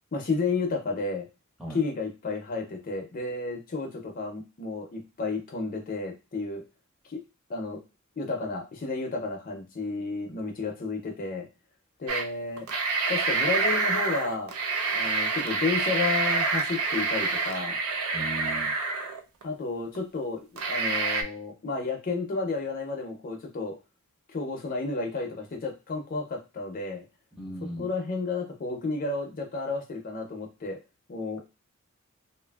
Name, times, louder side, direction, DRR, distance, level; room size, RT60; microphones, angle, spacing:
voice 1, 0.1-1.2 1.7-6.6 7.1-7.2 7.5-7.8 8.2-11.5 12.0-12.7 13.1-14.5 14.9-17.8 19.4-23.8 24.3-27.0 27.8-30.8 31.1-31.4, left 3 dB, 40° left, 3 dB, 0.5 m, -32 dB
sound 1, 12.1-12.3 12.6-19.4 19.9-20.0 20.6-21.2, right 4 dB, 80° right, 0.5 m, -27 dB
voice 2, 18.1-18.7 27.3-27.9, right 1 dB, 5° right, -2 dB, 0.6 m, -37 dB
2.7 x 2.5 x 2.2 m, 0.28 s
head